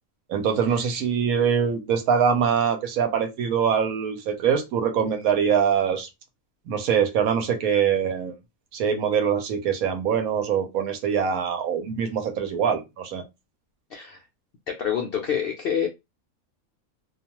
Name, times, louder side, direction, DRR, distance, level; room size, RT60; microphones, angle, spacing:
voice 1, 0.3-6.1 6.7-8.3 8.7-13.2, right 7 dB, 80° right, 1.1 m, -23 dB
voice 2, 13.9-14.2 14.7-15.9, left 8 dB, 75° left, 0.5 m, -27 dB
2.4 x 2.3 x 2.8 m
omnidirectional pair, 1.5 m